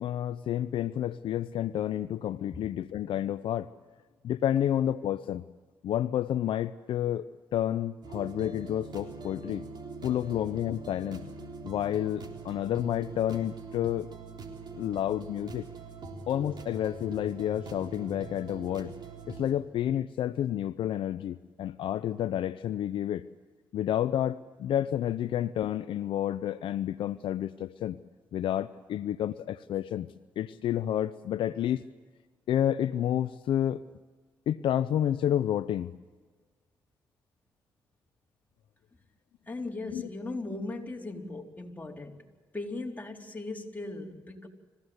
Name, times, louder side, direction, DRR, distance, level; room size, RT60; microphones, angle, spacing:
voice 1, 0.0-3.7 4.2-5.4 5.8-7.2 7.5-9.7 10.0-11.3 11.6-14.1 14.7-15.6 16.3-18.9 19.3-23.2 23.7-28.0 28.3-30.1 30.4-31.8 32.5-33.8 34.5-35.9 39.9-40.0, left 11 dB, 70° left, 13 dB, 0.6 m, -30 dB
sound 1, 8.0-19.5, right 4 dB, 55° right, 3.6 m, -43 dB
voice 2, 39.5-42.2 42.5-44.5, left 2 dB, 20° left, 0 dB, 4.1 m, -38 dB
26.0 x 16.5 x 8.1 m, 1.4 s
supercardioid pair, 55°, 9 cm